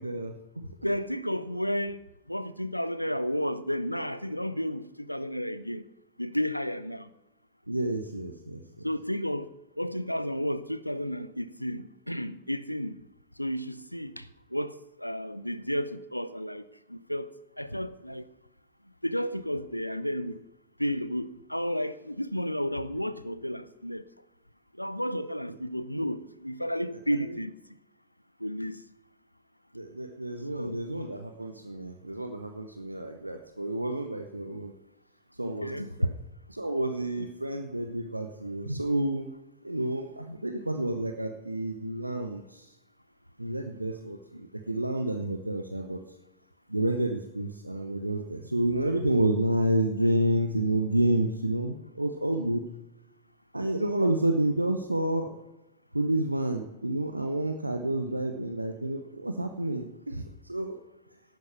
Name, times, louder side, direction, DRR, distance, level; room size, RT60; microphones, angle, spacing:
voice 1, 0.0-0.7 7.7-8.9 25.5-25.6 26.9-27.4 29.7-34.7 35.4-36.1 36.5-39.3 39.6-42.7 43.4-46.0 46.7-52.6 53.5-55.3 55.9-60.8, right 1 dB, 85° right, 0.8 m, -30 dB
voice 2, 0.8-2.0 2.3-5.9 6.2-7.1 8.8-12.9 13.4-14.3 14.5-16.6 16.9-17.3 17.6-18.2 19.0-20.4 20.8-24.0 24.8-27.5 28.4-28.8 30.6-30.8 35.4-35.9 37.2-37.3, equal, 90° left, 0.6 m, -32 dB
11.5 x 9.3 x 7.0 m
figure-of-eight pair, 90°, 0 cm